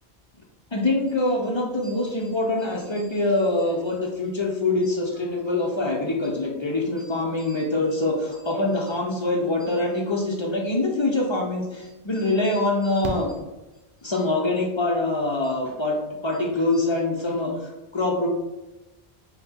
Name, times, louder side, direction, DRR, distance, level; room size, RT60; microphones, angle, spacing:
voice 1, 0.7-13.3 14.0-18.3, left 2 dB, 40° left, 0 dB, 0.4 m, -24 dB
Fireworks, 13.0-14.3 16.1-16.2 16.4-16.5, right 4 dB, 85° right, 0.8 m, -36 dB
4.5 x 2.1 x 3.4 m, 1.0 s
omnidirectional pair, 1.0 m